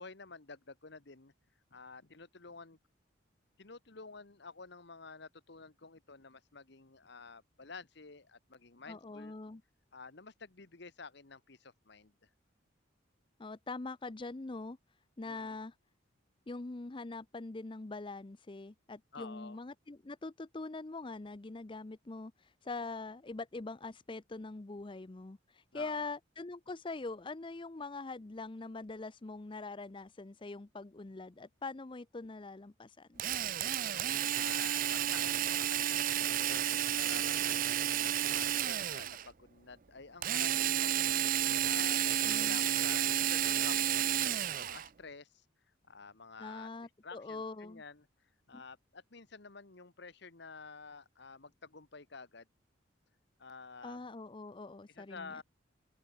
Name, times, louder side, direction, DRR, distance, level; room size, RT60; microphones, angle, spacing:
voice 1, 0.0-1.3 1.7-2.8 3.6-9.3 9.9-12.3 15.2-15.6 19.1-19.6 25.7-26.1 33.6-41.1 41.6-45.4 45.9-46.7 47.0-48.1 48.5-52.5 53.4-54.1 54.9-55.4, left 4 dB, 60° left, 1.4 m, -50 dB
voice 2, 8.9-9.6 13.4-14.8 15.2-15.7 16.5-33.2 42.2-42.6 46.4-47.8 48.5-48.6 53.8-55.3, left 3 dB, 25° left, 0.5 m, -43 dB
Drill, 33.2-39.3 40.2-44.9, right 11 dB, 45° right, 0.5 m, -31 dB
open air
head